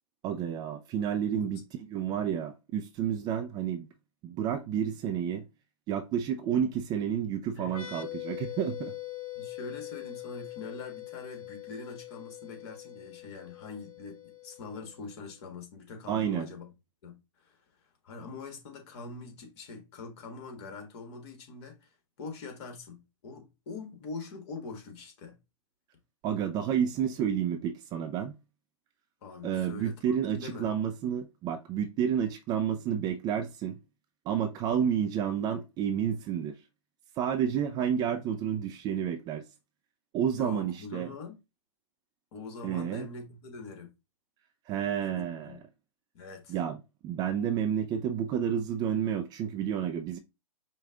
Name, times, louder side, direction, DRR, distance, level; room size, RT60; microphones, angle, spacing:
voice 1, 0.2-1.6 1.9-3.9 4.2-5.4 5.9-8.9 16.1-16.5 26.2-28.3 29.4-33.8 34.3-36.6 37.2-39.4 40.1-41.1 42.6-43.1 44.7-45.6 46.5-46.8 47.0-50.2, right 8 dB, 20° right, 0.4 m, -30 dB
sound 1, 7.7-15.2, left 16 dB, 75° left, 0.8 m, -43 dB
voice 2, 9.3-16.7 17.0-17.6 18.0-21.9 22.2-25.4 29.2-30.7 40.4-41.4 42.3-43.9 45.0-45.6 46.1-46.6, left 4 dB, 50° left, 1.6 m, -43 dB
5.0 x 2.3 x 3.6 m
hypercardioid pair, 125°, 18 cm